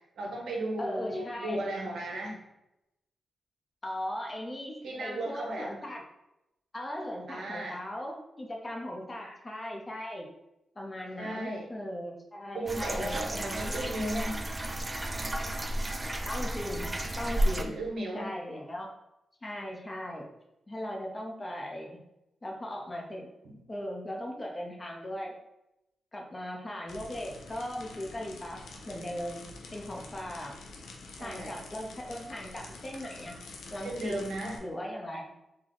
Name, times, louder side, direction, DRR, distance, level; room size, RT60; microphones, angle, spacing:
voice 1, 0.2-2.4 4.8-5.7 7.3-7.8 11.2-11.7 12.5-14.5 17.5-18.3 23.4-23.6 31.1-31.5 33.8-34.6, right 1 dB, 80° right, 0 dB, 0.7 m, -35 dB
voice 2, 0.8-1.6 3.8-6.0 6.7-10.3 10.8-13.2 13.7-13.8 16.3-17.7 18.1-18.9 19.4-20.3 20.7-22.0 22.4-23.3 23.7-25.3 26.1-29.4 29.7-30.6 31.2-33.3 33.7-34.2 34.6-35.3, left 1 dB, 30° left, 0 dB, 0.7 m, -38 dB
sound 1, 12.7-17.6, right 1 dB, 20° right, 0.3 m, -32 dB
sound 2, 26.9-34.6, left 3 dB, 90° left, 0.5 m, -47 dB
3.5 x 2.2 x 3.8 m, 0.89 s
cardioid pair, 75°, 0 cm